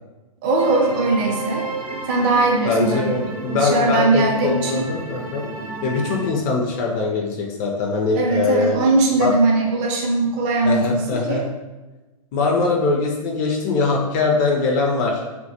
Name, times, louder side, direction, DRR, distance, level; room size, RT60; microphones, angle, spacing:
voice 1, 0.4-1.7 2.1-3.2 3.5-4.9 8.2-11.4, right 3 dB, 30° right, 0 dB, 0.4 m, -20 dB
sound 1, 0.6-6.3, right 2 dB, 85° right, 0.6 m, -31 dB
voice 2, 2.6-5.4 5.8-8.8 9.2-9.3 10.6-11.5 12.3-15.2, left 3 dB, 35° left, 0 dB, 0.4 m, -22 dB
2.2 x 2.2 x 2.7 m, 1.1 s
figure-of-eight pair, 110°, 18 cm